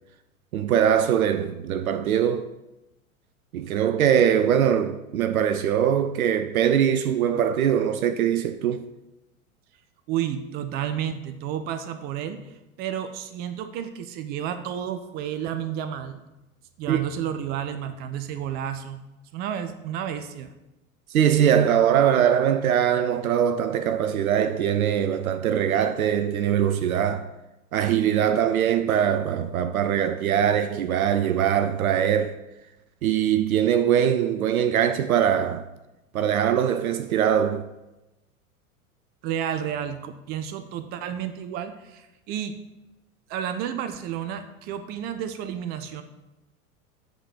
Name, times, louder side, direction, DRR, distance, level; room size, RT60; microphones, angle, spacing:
voice 1, 0.5-2.5 3.5-8.9 16.9-17.0 21.1-27.3 27.7-32.4 33.0-35.7 36.1-37.6, right 9 dB, 75° right, 0.5 m, -22 dB
voice 2, 10.1-16.2 16.8-19.0 19.3-20.5 39.2-42.6 43.3-46.0, right 9 dB, 25° right, 0.3 m, -31 dB
7.9 x 3.8 x 6.2 m
figure-of-eight pair, 85°, 43 cm